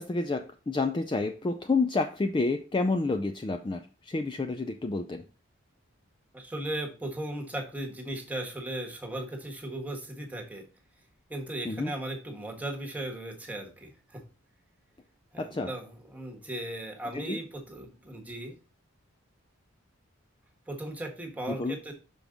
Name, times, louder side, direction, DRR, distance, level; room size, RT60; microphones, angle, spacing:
voice 1, 0.0-5.2 11.6-11.9 15.4-15.7 17.1-17.4 21.5-21.8, left 3 dB, 20° left, 7 dB, 0.3 m, -29 dB
voice 2, 6.3-10.6 11.3-14.2 15.3-18.6 20.7-21.9, right 1 dB, 5° right, 2 dB, 1.3 m, -37 dB
6.1 x 5.2 x 3.7 m, 0.35 s
head